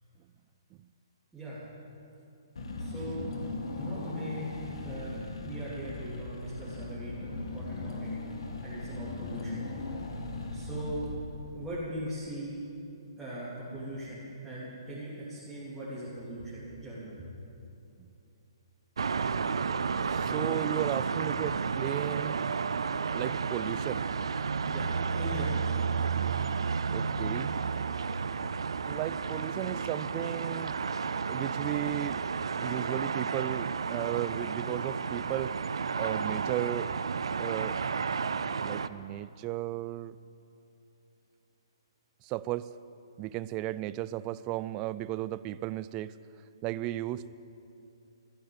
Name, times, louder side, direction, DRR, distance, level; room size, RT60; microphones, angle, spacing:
Car / Engine, 2.6-11.7, left 2 dB, 75° left, 1.9 m, -38 dB
voice 1, 2.8-3.2 3.8-4.5 4.8-8.1 8.6-9.6 10.5-11.1 11.5-12.5 13.2-17.1 24.7-24.9 25.2-25.6, right 1 dB, 5° right, -11 dB, 3.4 m, -40 dB
sound 1, 19.0-38.9, right 5 dB, 80° right, 0.5 m, -32 dB
voice 2, 20.1-22.4 23.1-24.0 26.9-27.5 28.9-30.8 31.3-32.2 32.6-35.6 36.0-36.9 37.4-37.8 38.6-40.2 42.2-42.7 43.2-46.2 46.6-47.3, right 15 dB, 25° right, 17 dB, 0.4 m, -35 dB
14.0 x 10.0 x 8.1 m, 2.8 s
hypercardioid pair, 145°, 3 cm